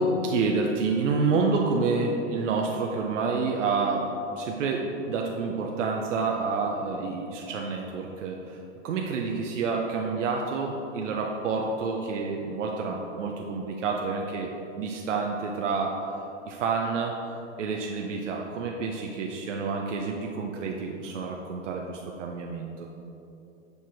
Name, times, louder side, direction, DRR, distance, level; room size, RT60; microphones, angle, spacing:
voice 1, 0.0-14.5 14.8-16.0 16.5-17.2 17.6-22.9, right 4 dB, 90° right, 1 dB, 0.7 m, -28 dB
6.9 x 4.2 x 4.7 m, 2.8 s
hypercardioid pair, 120°, 36 cm